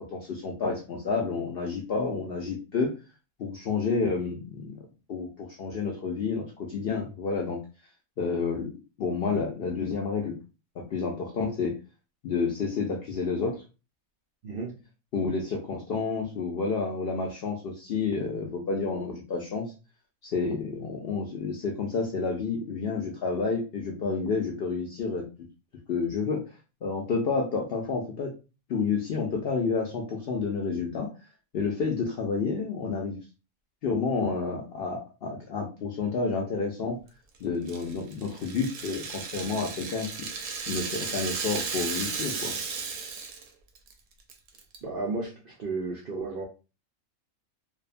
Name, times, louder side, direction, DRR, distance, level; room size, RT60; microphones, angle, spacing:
voice 1, 0.1-2.9 3.4-7.6 8.2-8.7 9.0-10.3 10.8-11.8 12.2-13.6 15.1-19.7 20.2-25.3 25.9-26.4 26.8-28.3 28.7-31.1 31.5-33.2 33.8-37.0 37.4-40.1 40.7-42.5, left 4 dB, 65° left, 0.6 m, -30 dB
voice 2, 14.4-14.8 44.8-46.4, right 3 dB, 65° right, 0.5 m, -33 dB
Rattle (instrument), 37.7-43.5 43.8-43.9 44.3-44.8, right 5 dB, 85° right, 1.0 m, -34 dB
2.7 x 2.2 x 2.4 m
omnidirectional pair, 1.5 m